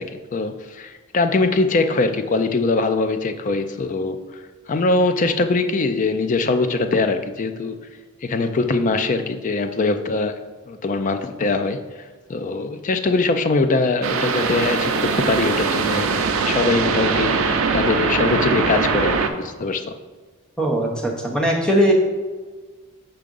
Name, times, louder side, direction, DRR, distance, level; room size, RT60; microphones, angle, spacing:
voice 1, 0.0-4.2 4.7-7.8 8.2-10.4 10.7-11.8 12.3-16.1 16.4-19.9, left 3 dB, 35° left, 8 dB, 0.4 m, -22 dB
sound 1, 14.0-19.3, right 4 dB, 70° right, 0.5 m, -21 dB
voice 2, 20.6-21.9, equal, 5° left, 0 dB, 0.8 m, -19 dB
5.7 x 3.7 x 5.3 m, 1.4 s
head